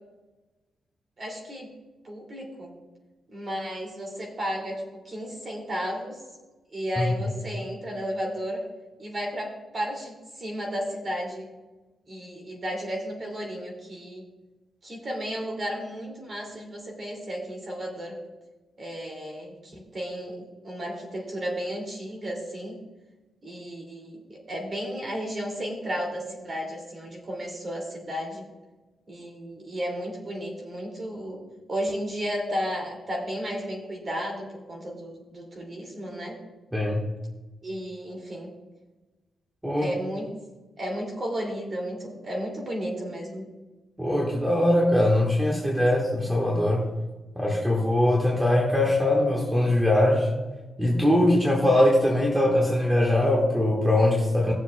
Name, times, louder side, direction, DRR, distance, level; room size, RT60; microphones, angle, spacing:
voice 1, 1.2-1.7 2.0-2.7 3.3-6.2 6.7-8.6 9.0-11.5 12.1-14.2 14.8-18.2 18.8-22.8 23.4-28.5 29.1-31.4 31.7-36.4 37.6-38.5 39.8-40.3 40.8-43.5, equal, 30° right, 0 dB, 2.5 m, -33 dB
voice 2, 36.7-37.0 39.6-39.9 44.0-46.9 47.3-50.3 50.8-54.5, left 1 dB, 5° right, -3 dB, 1.4 m, -22 dB
18.5 x 7.0 x 2.3 m, 1.2 s
wide cardioid pair, 170°, 0 cm